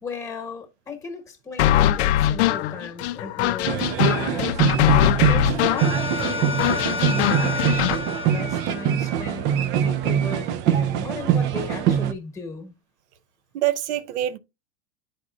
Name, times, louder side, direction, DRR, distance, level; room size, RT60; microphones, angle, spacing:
voice 1, 0.0-4.5 5.2-12.7, left 4 dB, 10° left, 1.3 m, -36 dB
sound 1, 1.6-8.0, left 12 dB, 65° left, 0.5 m, -22 dB
sound 2, 3.6-12.1, right 9 dB, 30° right, 0.4 m, -23 dB
sound 3, 5.8-9.7, left 4 dB, 5° right, 0.9 m, -31 dB
voice 2, 13.5-14.4, right 13 dB, 70° right, 0.7 m, -26 dB
11.0 x 4.2 x 2.4 m
supercardioid pair, 135°, 35 cm